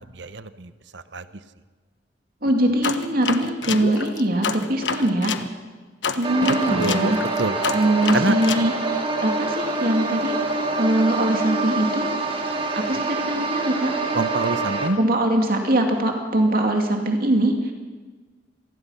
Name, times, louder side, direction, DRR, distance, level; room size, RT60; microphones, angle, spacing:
voice 1, 0.1-1.2 6.5-7.6 8.1-8.4 14.1-15.0, right 2 dB, 70° right, 12 dB, 1.0 m, -27 dB
voice 2, 2.4-5.3 6.1-7.2 7.7-8.7 9.2-10.4 10.8-12.1 12.8-14.0 15.0-17.7, right 1 dB, 55° right, 3 dB, 2.5 m, -22 dB
sound 1, 2.8-5.5 6.0-8.7, left 5 dB, 75° left, 1.2 m, -28 dB
sound 2, 6.2-14.9, right 3 dB, 30° right, 2.5 m, -26 dB
26.5 x 20.0 x 5.8 m, 1.4 s
head